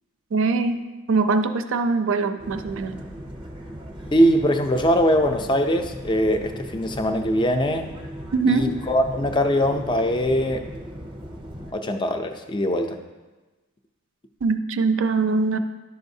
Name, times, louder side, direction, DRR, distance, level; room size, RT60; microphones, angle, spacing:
voice 1, 0.3-3.0 8.3-8.8 14.4-15.6, right 4 dB, 55° right, 9 dB, 0.4 m, -22 dB
sound 1, 2.4-11.7, equal, 25° right, 0.7 m, -38 dB
voice 2, 4.1-7.9 8.5-10.7 11.7-13.0, equal, 20° left, 6 dB, 0.4 m, -21 dB
11.5 x 5.5 x 2.7 m, 1.2 s
head